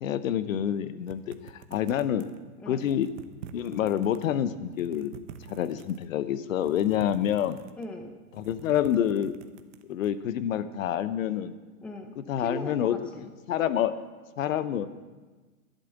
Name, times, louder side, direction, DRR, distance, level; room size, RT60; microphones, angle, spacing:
voice 1, 0.0-2.3 2.7-3.1 3.5-5.1 5.5-7.6 8.4-9.3 9.9-11.5 12.2-13.9 14.4-14.9, left 10 dB, 60° left, 13 dB, 0.9 m, -27 dB
sound 1, 1.1-2.4 2.8-4.3 4.6-6.1 6.6-7.9 8.3-10.1, right 9 dB, 50° right, 1.1 m, -47 dB
voice 2, 7.8-8.1 11.8-12.1 12.4-13.3, left 1 dB, 5° left, 4 dB, 0.6 m, -38 dB
11.5 x 9.1 x 7.2 m, 1.3 s
hypercardioid pair, 130°, 44 cm